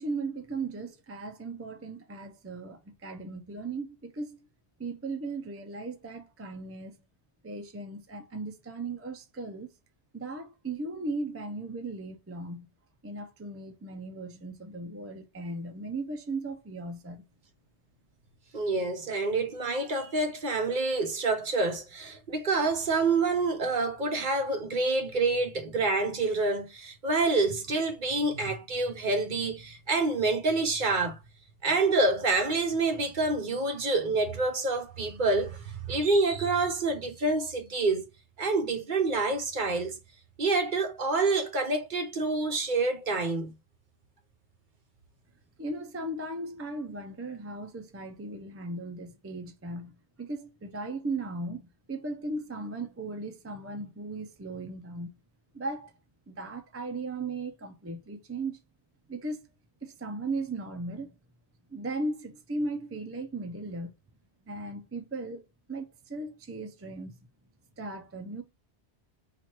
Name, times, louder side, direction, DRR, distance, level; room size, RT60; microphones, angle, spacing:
voice 1, 0.0-4.4 4.8-7.0 7.4-9.7 10.1-12.7 13.0-17.2 45.6-55.2 55.5-55.9 56.3-58.6 59.1-59.4 59.8-61.1 61.7-63.9 64.5-67.2 67.8-68.4, right 2 dB, 20° right, 0.4 m, -37 dB
voice 2, 18.5-31.2 31.6-38.0 38.4-40.0 40.4-43.5, right 3 dB, 50° right, 0.8 m, -27 dB
4.5 x 2.5 x 4.3 m
omnidirectional pair, 1.1 m